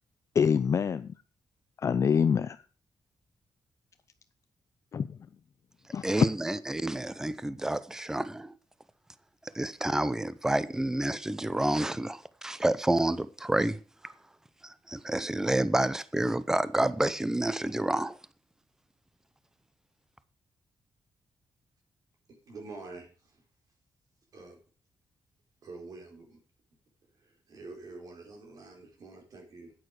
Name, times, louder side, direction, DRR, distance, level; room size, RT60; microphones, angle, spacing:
voice 1, 0.3-1.1 1.8-2.6 4.9-5.2 5.9-6.3, left 7 dB, 45° left, 0.5 m, -25 dB
voice 2, 6.0-8.5 9.5-13.8 14.0-14.1 14.6-18.2, right 1 dB, 5° right, 0.6 m, -29 dB
voice 3, 22.5-23.4 24.3-24.6 25.6-26.4 27.2-29.7, right 3 dB, 60° right, 4.3 m, -46 dB
8.9 x 8.8 x 6.6 m
cardioid pair, 125°, 7 cm